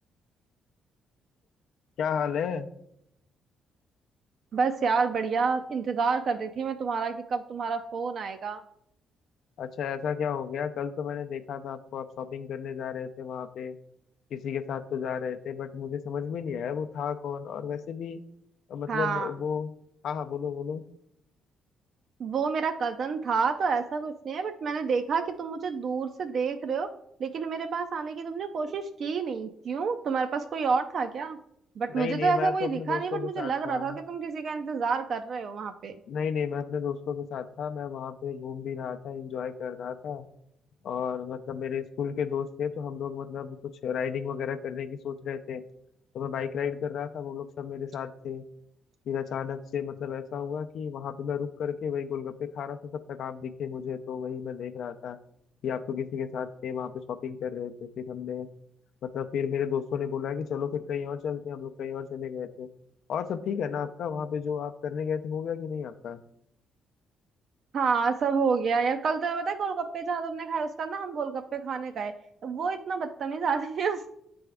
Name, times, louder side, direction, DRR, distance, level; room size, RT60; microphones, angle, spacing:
voice 1, 2.0-2.7 9.6-13.8 14.3-18.2 18.7-19.7 20.0-20.8 31.9-34.0 36.1-40.3 40.8-45.6 46.1-48.4 49.1-55.2 55.6-58.5 59.0-62.7 63.1-66.2, left 7 dB, 70° left, 8 dB, 0.4 m, -33 dB
voice 2, 4.5-8.6 18.9-19.3 22.2-26.9 27.2-31.4 31.8-35.9 67.7-72.1 72.4-74.1, right 5 dB, 55° right, 7 dB, 0.4 m, -29 dB
8.5 x 3.4 x 3.5 m, 0.76 s
cardioid pair, 90°, 0 cm